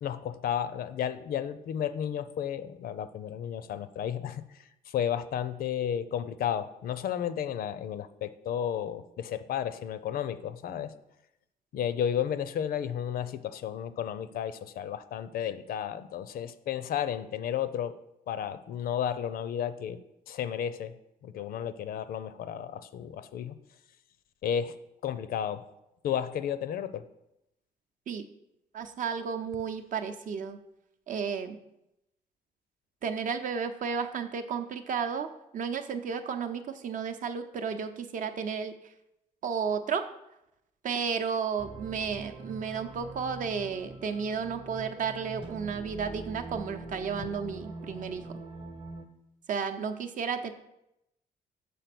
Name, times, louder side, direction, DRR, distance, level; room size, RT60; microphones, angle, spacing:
voice 1, 0.0-10.9 11.7-17.9 18.3-20.0 20.3-20.9 21.2-23.5 24.4-24.7 25.0-25.6 26.0-27.1, left 9 dB, 75° left, 13 dB, 0.5 m, -33 dB
voice 2, 28.7-30.6 31.1-31.6 33.0-35.3 35.5-38.9 39.4-40.0 40.8-48.3 49.5-50.5, right 6 dB, 60° right, 7 dB, 0.7 m, -33 dB
sound 1, 41.6-49.1, right 2 dB, 35° right, 0.9 m, -43 dB
6.9 x 4.1 x 6.0 m, 0.86 s
cardioid pair, 110°, 15 cm